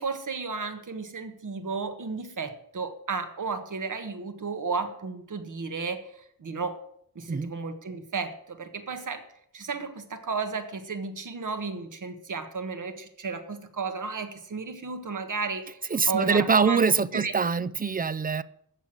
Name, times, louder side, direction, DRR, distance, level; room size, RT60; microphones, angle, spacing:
voice 1, 0.0-6.0 6.4-6.8 7.1-9.2 9.5-15.8 16.1-16.8 17.1-17.3, right 4 dB, 60° right, 8 dB, 1.6 m, -33 dB
voice 2, 15.9-18.4, right 5 dB, 25° right, 18 dB, 0.4 m, -24 dB
14.0 x 6.2 x 9.0 m, 0.70 s
wide cardioid pair, 155°, 34 cm